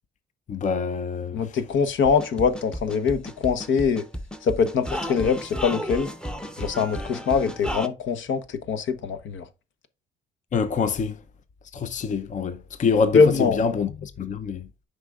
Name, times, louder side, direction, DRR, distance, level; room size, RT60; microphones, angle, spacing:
voice 1, 0.5-1.4 10.5-11.2 11.7-13.2 13.6-14.7, left 5 dB, 40° left, 0.6 m, -25 dB
voice 2, 1.3-4.0 4.4-6.1 6.6-9.4 13.1-13.6, left 5 dB, 75° left, 0.9 m, -23 dB
sound 1, 2.0-7.9, equal, 5° left, 0.7 m, -33 dB
7.9 x 5.2 x 2.3 m
cardioid pair, 90°, 20 cm